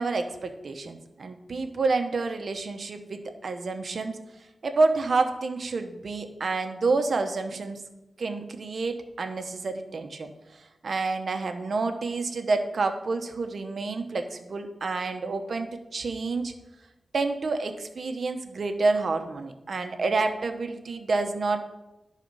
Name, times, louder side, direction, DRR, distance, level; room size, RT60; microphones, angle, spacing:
voice 1, 0.0-4.2 4.6-7.8 8.2-16.5 17.1-21.6, right 3 dB, 70° right, 7 dB, 0.8 m, -28 dB
11.0 x 4.1 x 5.4 m, 0.99 s
cardioid pair, 65°, 0 cm